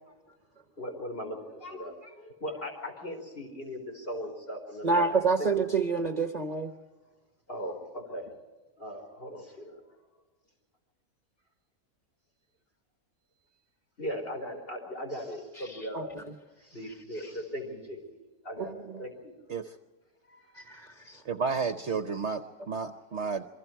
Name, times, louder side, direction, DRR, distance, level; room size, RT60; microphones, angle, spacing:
voice 1, 0.8-5.5 7.5-8.3 8.8-9.8 14.0-16.1 16.6-18.1 18.4-19.3 20.3-20.5, equal, 35° left, 2 dB, 4.9 m, -38 dB
voice 2, 4.8-6.7 15.6-16.2 18.6-19.1 20.5-21.2, right 4 dB, 30° right, 5 dB, 1.0 m, -29 dB
voice 3, 21.2-23.4, right 5 dB, 55° right, 8 dB, 1.0 m, -32 dB
28.0 x 23.5 x 4.7 m, 1.3 s
omnidirectional pair, 1.6 m